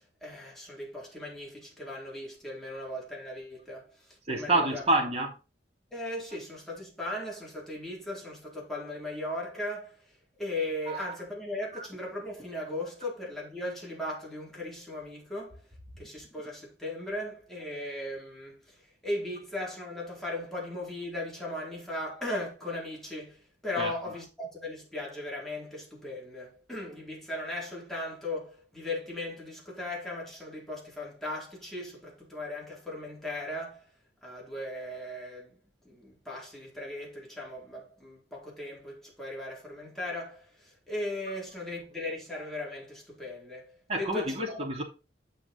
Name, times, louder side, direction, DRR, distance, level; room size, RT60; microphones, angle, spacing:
voice 1, 0.0-4.8 5.9-15.6 16.0-33.9 34.2-35.6 35.8-44.6, left 1 dB, ahead, 4.2 m, -38 dB
voice 2, 4.3-5.3 10.9-11.2 11.7-11.9 23.8-23.9 43.9-44.8, right 2 dB, 35° right, 2.7 m, -28 dB
9.0 x 6.0 x 4.0 m
head